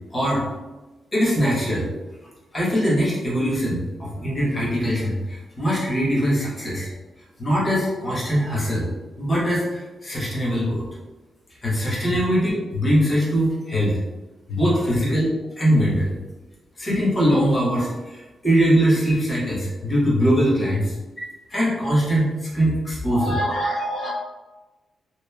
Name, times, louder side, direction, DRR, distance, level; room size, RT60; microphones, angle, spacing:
voice 1, 0.1-0.5 1.1-1.9 2.5-6.9 7.4-8.9 9.2-10.8 11.6-14.0 14.5-15.3 15.6-16.2 16.8-23.4, equal, 30° left, -6 dB, 1.1 m, -22 dB
voice 2, 23.1-24.1, equal, 75° left, -6 dB, 0.8 m, -26 dB
3.0 x 2.5 x 2.2 m, 1.1 s
cardioid pair, 105°, 0 cm